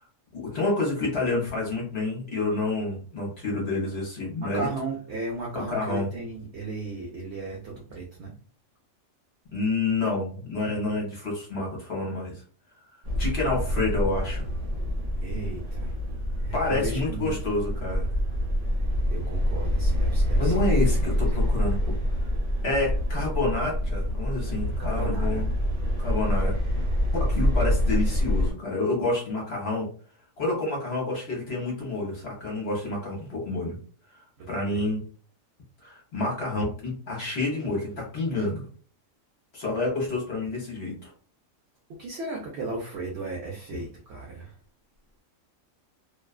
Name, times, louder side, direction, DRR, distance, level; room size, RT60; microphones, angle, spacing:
voice 1, 0.3-4.7 5.5-6.1 9.5-12.4 13.2-14.4 16.5-18.1 20.4-22.0 22.6-25.5 26.0-26.6 27.2-29.9 30.4-33.8 34.5-35.0 35.8-38.6 39.5-41.1, left 2 dB, 55° left, -3 dB, 1.1 m, -28 dB
voice 2, 4.4-8.3 15.2-15.9 16.4-17.3 19.1-20.7 21.2-21.3 24.8-25.4 34.4-34.8 42.0-44.6, right 3 dB, 65° right, -2 dB, 0.8 m, -35 dB
sound 1, 13.0-28.5, equal, 45° right, 1.2 m, -26 dB
2.4 x 2.3 x 2.3 m, 0.42 s
omnidirectional pair, 1.4 m